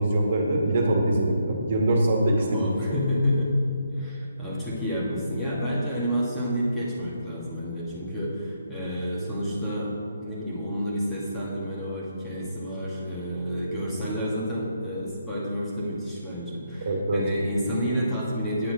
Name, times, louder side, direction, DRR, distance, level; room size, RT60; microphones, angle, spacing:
voice 1, 0.0-2.6 16.8-17.2, right 1 dB, 50° right, 0 dB, 1.9 m, -23 dB
voice 2, 2.4-3.6 3.9-9.9 10.2-18.7, equal, 5° left, -7 dB, 2.1 m, -29 dB
8.7 x 8.6 x 4.9 m, 2.3 s
hypercardioid pair, 155°, 0 cm